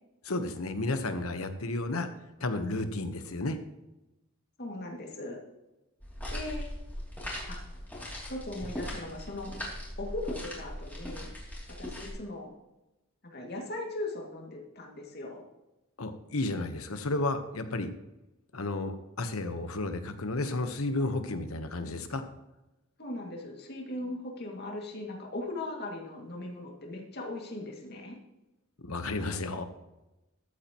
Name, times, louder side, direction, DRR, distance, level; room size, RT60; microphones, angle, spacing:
voice 1, 0.2-2.1 2.4-3.6 16.0-17.9 18.5-22.2 28.8-29.6, left 2 dB, 80° left, 8 dB, 1.1 m, -32 dB
voice 2, 4.6-5.4 6.3-6.7 7.4-7.6 8.3-9.5 10.0-11.3 11.8-12.5 13.3-15.4 23.0-28.2, left 2 dB, 50° left, 0 dB, 2.3 m, -39 dB
sound 1, 6.0-12.1, left 1 dB, 10° left, 2.8 m, -39 dB
13.5 x 8.7 x 3.0 m, 0.98 s
head